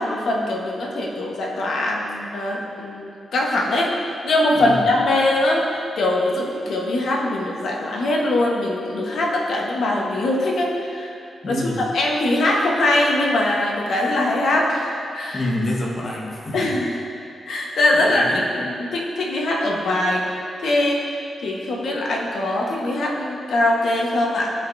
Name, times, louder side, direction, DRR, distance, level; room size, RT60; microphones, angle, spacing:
voice 1, 0.0-11.2 11.5-15.4 16.5-16.9 17.5-18.3 18.6-24.5, left 1 dB, 75° left, -2 dB, 1.2 m, -22 dB
voice 2, 4.5-4.9 11.4-11.8 15.3-16.8 17.9-18.7, left 1 dB, 40° left, -2 dB, 1.4 m, -27 dB
14.0 x 5.2 x 2.7 m, 2.5 s
cardioid pair, 95°, 0 cm